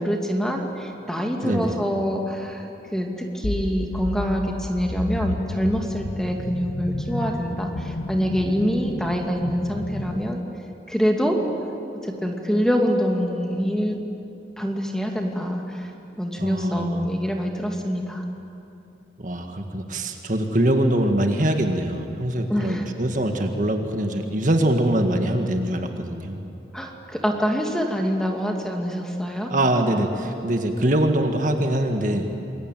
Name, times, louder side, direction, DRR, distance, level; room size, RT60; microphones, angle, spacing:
voice 1, 0.0-2.7 2.9-10.4 10.9-11.4 12.0-14.0 14.6-15.9 16.2-18.2 22.5-22.9 26.7-29.5, equal, 5° left, 1 dB, 2.4 m, -25 dB
voice 2, 1.4-1.8 16.4-17.0 19.2-26.4 29.5-32.3, right 1 dB, 45° right, 4 dB, 1.9 m, -23 dB
sound 1, 3.4-10.3, left 2 dB, 75° left, 1.0 m, -32 dB
28.0 x 22.5 x 9.1 m, 2.8 s
head